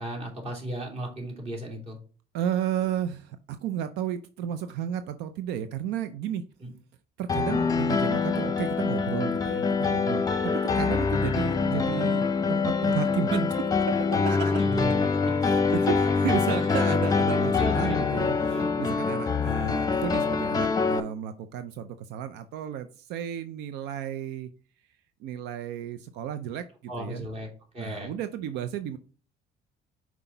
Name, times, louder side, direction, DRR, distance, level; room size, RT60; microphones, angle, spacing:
voice 1, 0.0-2.0 6.6-6.7 14.5-15.0 15.3-15.4 17.6-18.0 18.4-18.8 26.9-27.5 27.7-28.1, right 1 dB, 40° right, 0 dB, 3.0 m, -35 dB
voice 2, 2.3-6.4 7.2-14.6 15.4-24.5 25.2-27.3 27.8-29.0, right 9 dB, 90° right, 11 dB, 0.5 m, -33 dB
Piano, 7.3-21.0, left 5 dB, 20° left, 0.7 m, -25 dB
5.8 x 4.7 x 3.9 m, 0.40 s
cardioid pair, 110°, 17 cm